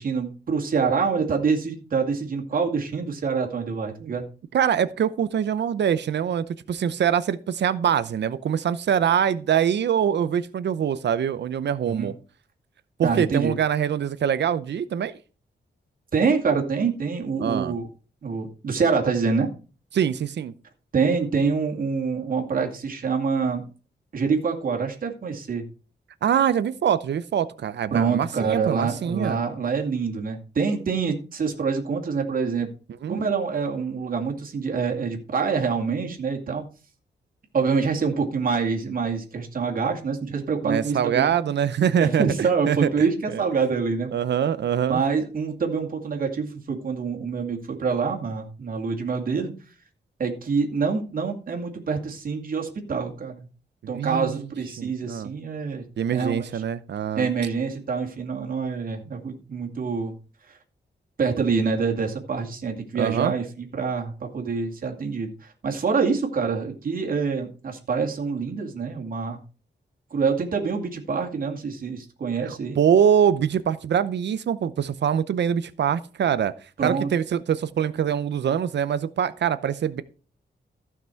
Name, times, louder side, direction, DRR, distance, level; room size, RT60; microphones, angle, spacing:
voice 1, 0.0-4.2 11.9-12.1 13.0-13.5 16.1-17.9 18.2-19.5 20.9-23.7 24.1-25.6 27.9-32.7 33.1-36.6 37.5-41.5 42.0-44.1 44.9-49.5 50.2-53.5 53.9-56.6 57.2-60.1 60.5-60.6 61.2-69.4 70.1-72.8 76.8-77.1, right 5 dB, 50° right, 2.3 m, -26 dB
voice 2, 4.5-12.1 13.0-15.1 17.4-17.7 19.9-20.5 26.2-29.4 33.0-33.2 40.6-42.9 43.3-43.4 44.1-45.0 53.9-54.4 54.8-55.3 56.0-57.3 62.9-63.3 72.4-76.5 76.8-80.0, right 8 dB, 75° right, 0.7 m, -24 dB
14.5 x 6.0 x 4.5 m
wide cardioid pair, 165°, 18 cm